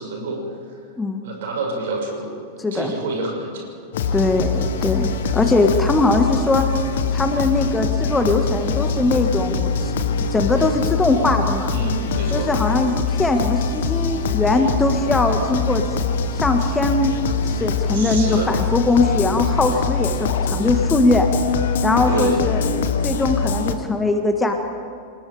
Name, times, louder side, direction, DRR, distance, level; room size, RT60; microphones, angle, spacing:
voice 1, 0.0-0.8 1.2-2.4 2.7-3.7 11.7-12.5 17.9-18.5 22.1-22.4, right 3 dB, 55° right, 1 dB, 6.0 m, -28 dB
sound 1, 3.9-23.7, left 4 dB, 60° left, 1.4 m, -23 dB
voice 2, 4.1-6.7 7.1-10.0 10.3-11.7 12.3-15.8 16.3-17.1 17.4-21.3 21.8-22.6 23.0-24.5, left 2 dB, 10° left, 5 dB, 1.6 m, -20 dB
27.5 x 19.5 x 5.0 m, 2.4 s
figure-of-eight pair, 90°, 0 cm